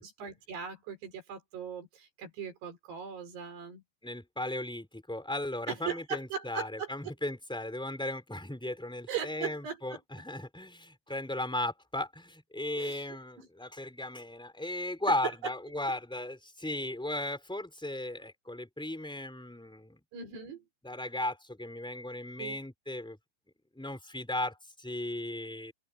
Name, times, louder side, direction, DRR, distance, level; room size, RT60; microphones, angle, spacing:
voice 1, 0.0-3.8 5.7-6.9 9.1-10.0 12.8-13.0 13.4-13.5 20.1-20.6 22.4-22.6, right 7 dB, 75° right, 6.6 m, -39 dB
voice 2, 4.0-20.0 20.8-23.2 23.7-25.7, left 1 dB, ahead, 3.3 m, -36 dB
open air
omnidirectional pair, 4.8 m